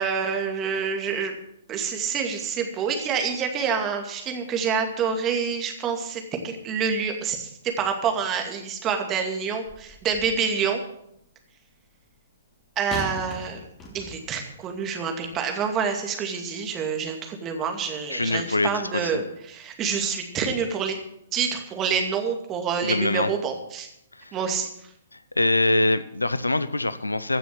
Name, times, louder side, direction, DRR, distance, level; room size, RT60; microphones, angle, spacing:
voice 1, 0.0-1.3 1.7-7.5 7.8-10.8 12.8-13.6 13.9-21.0 21.3-23.9 24.3-24.7, right 6 dB, 25° right, 4 dB, 2.3 m, -27 dB
sound 1, 9.7-10.5 12.9-14.4 15.2-15.4, left 2 dB, 20° left, 3.0 m, -38 dB
voice 2, 18.1-19.1 22.8-23.3 24.1-24.3 25.1-27.4, left 2 dB, 85° left, 15 dB, 0.8 m, -24 dB
15.5 x 6.9 x 7.7 m, 0.76 s
figure-of-eight pair, 120°, 0 cm